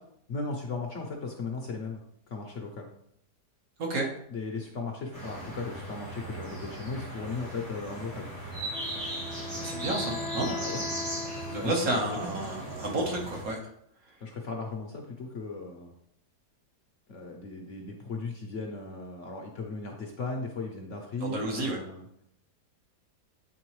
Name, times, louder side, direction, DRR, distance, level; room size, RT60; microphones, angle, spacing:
voice 1, 0.3-2.0 2.3-2.9 4.3-8.3 10.4-10.8 11.5-12.4 14.2-15.9 17.1-22.1, left 3 dB, 60° left, 2 dB, 0.9 m, -37 dB
sound 1, 5.1-13.4, right 1 dB, 85° right, 3.3 m, -38 dB
Wind instrument woodwind instrument, 8.7-12.3, left 3 dB, 20° left, 0.6 m, -39 dB
voice 2, 9.6-10.5 11.5-13.6 21.2-21.8, right 2 dB, 60° right, 0 dB, 1.5 m, -30 dB
8.3 x 3.9 x 3.1 m, 0.72 s
omnidirectional pair, 1.8 m